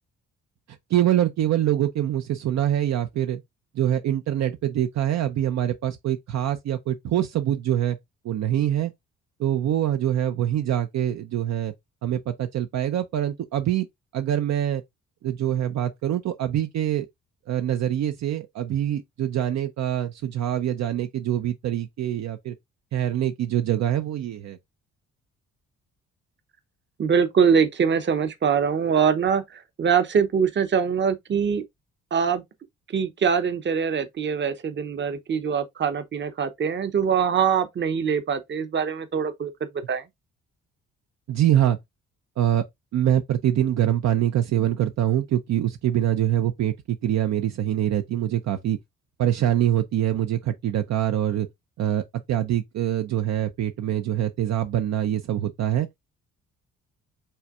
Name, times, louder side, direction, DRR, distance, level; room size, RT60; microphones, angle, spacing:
voice 1, 0.9-3.4 3.7-8.0 8.2-8.9 9.4-11.7 12.0-13.9 14.1-14.8 15.2-17.1 17.5-22.5 22.9-24.6 41.3-41.8 42.4-42.6 42.9-48.8 49.2-51.5 51.8-55.9, right 11 dB, 65° right, 0.6 m, -24 dB
voice 2, 27.0-31.6 32.1-32.4 32.9-39.5 39.9-40.0, right 7 dB, 40° right, 0.8 m, -23 dB
5.6 x 3.3 x 2.4 m
cardioid pair, 90°, 30 cm